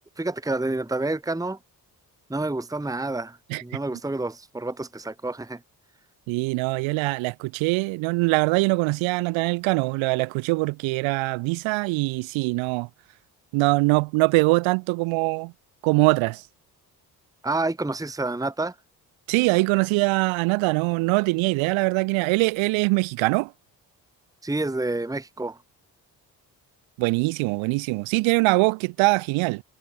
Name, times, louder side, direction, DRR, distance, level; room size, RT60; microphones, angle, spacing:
voice 1, 0.2-1.6 2.3-5.6 17.4-18.7 24.4-25.6, right 2 dB, 5° right, 1.3 m, -28 dB
voice 2, 6.3-12.9 13.5-15.5 15.8-16.4 19.3-23.5 27.0-29.6, right 25 dB, 75° right, 0.7 m, -23 dB
hypercardioid pair, 45°, 47 cm